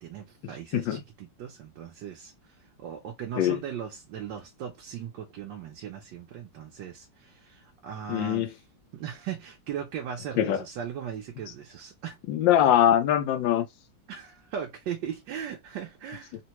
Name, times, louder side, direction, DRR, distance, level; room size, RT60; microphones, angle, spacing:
voice 1, 0.0-2.3 2.8-8.6 8.9-12.2 14.1-16.4, right 8 dB, 75° right, 1.4 m, -38 dB
voice 2, 8.1-8.5 10.4-10.6 12.3-13.7, left 11 dB, 85° left, 1.3 m, -22 dB
3.8 x 2.1 x 2.9 m
omnidirectional pair, 2.0 m